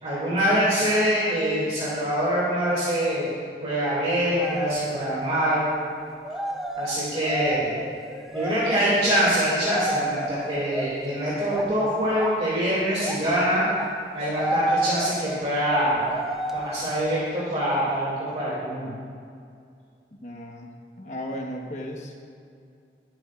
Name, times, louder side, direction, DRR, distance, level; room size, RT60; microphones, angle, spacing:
voice 1, 0.0-3.3 3.6-5.7 6.8-7.7 8.3-13.6 14.1-16.0 16.5-18.9, equal, 35° right, -8 dB, 2.5 m, -24 dB
sound 1, 4.4-4.9 5.4-5.6 6.2-11.1 11.5-11.8 12.1-12.5 13.0-13.3 13.8-17.0, right 1 dB, 5° right, 0.6 m, -31 dB
voice 2, 20.2-20.7 21.0-22.2, equal, 40° left, 1 dB, 1.2 m, -35 dB
21.0 x 8.8 x 2.5 m, 2.3 s
head